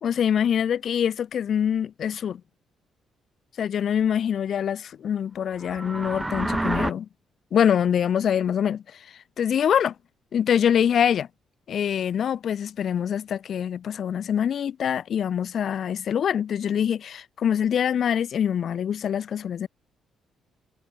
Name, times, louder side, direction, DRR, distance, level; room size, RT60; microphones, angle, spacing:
voice 1, 0.0-2.4 3.6-7.1 7.5-9.0 9.4-9.9 10.3-11.3 11.7-19.7, left 8 dB, 60° left, 1.2 m, -24 dB
sound 1, 5.5-6.9, right 2 dB, 15° right, 1.6 m, -28 dB
cardioid pair, 90°, 0 cm